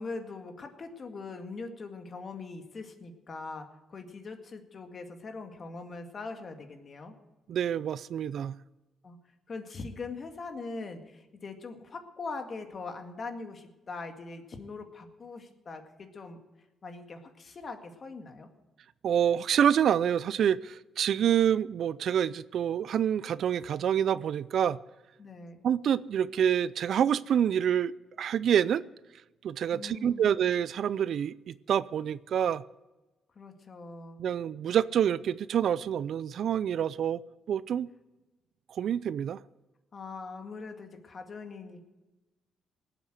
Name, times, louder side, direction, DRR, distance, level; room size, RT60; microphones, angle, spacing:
voice 1, 0.0-7.1 9.0-9.2 9.5-16.4 16.8-18.5 25.2-25.6 29.7-30.3 33.4-34.2 39.9-41.9, left 3 dB, 40° left, 6 dB, 2.0 m, -42 dB
voice 2, 7.5-8.6 19.0-24.8 25.6-27.9 28.2-28.8 29.4-32.6 34.2-37.2 37.5-37.9 38.7-39.4, right 9 dB, 65° right, 19 dB, 0.4 m, -27 dB
18.5 x 8.2 x 7.9 m, 1.1 s
cardioid pair, 90°, 0 cm